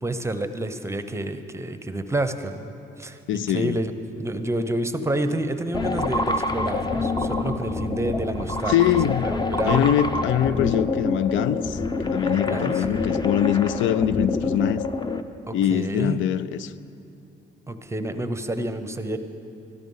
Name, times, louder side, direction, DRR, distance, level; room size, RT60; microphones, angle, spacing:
voice 1, 0.0-8.8 9.2-9.9 12.5-12.8 15.5-16.2 17.7-19.2, right 1 dB, 15° right, 8 dB, 0.7 m, -29 dB
voice 2, 3.3-3.8 8.7-9.2 9.6-11.8 12.0-14.9 15.5-16.7, left 10 dB, 75° left, 16 dB, 0.4 m, -23 dB
sound 1, 5.7-15.2, left 3 dB, 20° left, 0.7 m, -26 dB
13.0 x 12.5 x 5.5 m, 2.7 s
cardioid pair, 90°, 20 cm